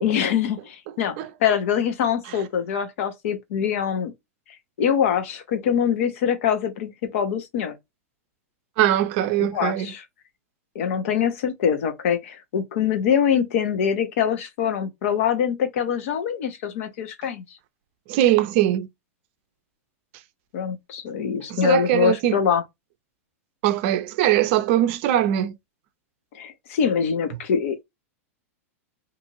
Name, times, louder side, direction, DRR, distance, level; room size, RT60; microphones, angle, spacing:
voice 1, 0.0-4.1 4.8-7.7 9.4-10.0 10.7-17.4 20.5-22.6 26.3-27.8, left 8 dB, 65° left, 0.8 m, -24 dB
voice 2, 8.8-9.9 18.1-18.9 21.5-22.4 23.6-25.6, right 12 dB, 55° right, 0.5 m, -21 dB
2.6 x 2.4 x 3.0 m
hypercardioid pair, 110°, 8 cm